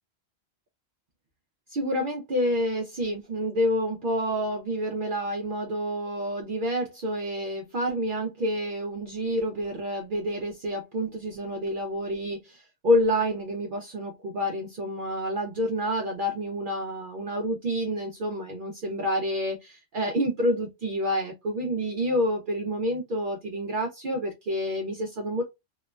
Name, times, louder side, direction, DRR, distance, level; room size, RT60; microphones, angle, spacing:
voice 1, 1.7-25.4, equal, 60° right, 0.7 m, -28 dB
2.9 x 2.1 x 2.2 m
omnidirectional pair, 1.1 m